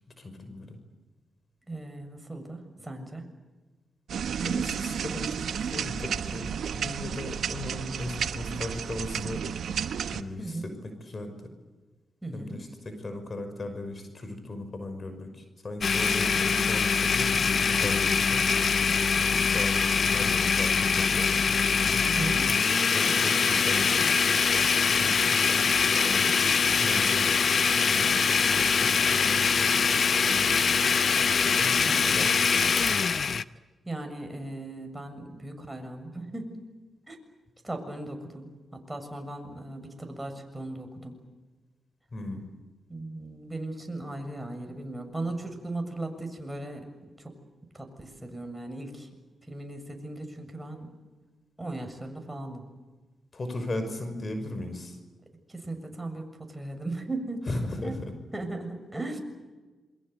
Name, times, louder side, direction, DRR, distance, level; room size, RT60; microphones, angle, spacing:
voice 1, 0.2-0.8 4.4-9.4 10.1-10.6 11.0-11.3 12.3-18.4 19.2-21.3 21.9-22.4 22.9-24.1 24.9-26.3 26.8-29.8 30.2-30.6 31.4-32.4 42.1-42.5 53.3-55.0 57.5-58.0, left 1 dB, 45° left, 8 dB, 5.8 m, -37 dB
voice 2, 1.7-3.3 10.4-10.7 12.2-12.6 22.0-22.5 33.9-36.5 37.1-37.2 37.6-41.2 42.9-46.9 47.2-47.3 47.7-49.1 49.5-50.9 51.6-52.6 55.5-57.4 57.8-58.0 58.3-59.2, right 2 dB, 15° right, 5 dB, 7.0 m, -37 dB
sound 1, 4.1-10.2, right 7 dB, 75° right, 1.1 m, -32 dB
Domestic sounds home sounds, 15.8-33.4, left 5 dB, 60° left, 0.8 m, -23 dB
28.0 x 23.0 x 8.2 m, 1.3 s
supercardioid pair, 50°, 0 cm